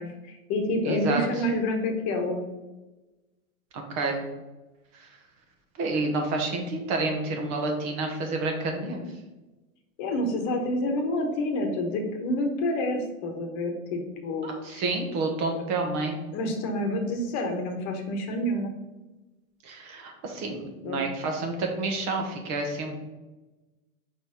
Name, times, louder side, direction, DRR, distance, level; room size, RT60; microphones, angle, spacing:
voice 1, 0.0-2.5 10.0-14.9 16.3-18.7 20.8-21.0, left 1 dB, 40° left, 4 dB, 1.2 m, -28 dB
voice 2, 0.8-1.2 3.7-4.2 5.8-9.0 14.4-16.2 19.6-23.0, right 3 dB, 40° right, 3 dB, 1.4 m, -29 dB
4.8 x 4.1 x 5.2 m, 1.1 s
hypercardioid pair, 115°, 43 cm